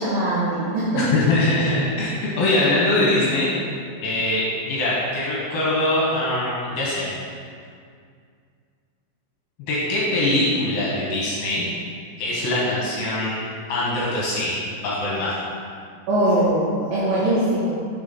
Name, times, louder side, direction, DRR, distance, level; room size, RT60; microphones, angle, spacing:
voice 1, 0.0-1.1 16.1-17.7, right 1 dB, 75° right, -8 dB, 2.2 m, -21 dB
voice 2, 0.9-2.1 2.4-3.5 4.0-7.1 9.6-11.7 12.2-13.4 13.7-15.4, left 2 dB, 70° left, -6 dB, 2.5 m, -22 dB
6.0 x 5.1 x 3.8 m, 2.2 s
omnidirectional pair, 5.0 m